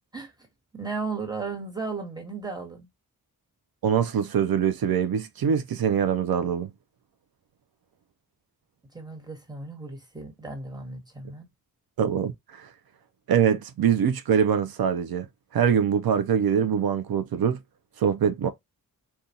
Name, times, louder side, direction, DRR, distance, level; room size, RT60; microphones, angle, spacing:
voice 1, 0.7-2.9 8.9-11.5, right 4 dB, 10° right, 1.3 m, -35 dB
voice 2, 3.8-6.7 12.0-12.7 13.3-15.3 15.5-17.6 18.0-18.5, right 8 dB, 85° right, 0.6 m, -23 dB
3.8 x 2.3 x 2.6 m
wide cardioid pair, 105°, 36 cm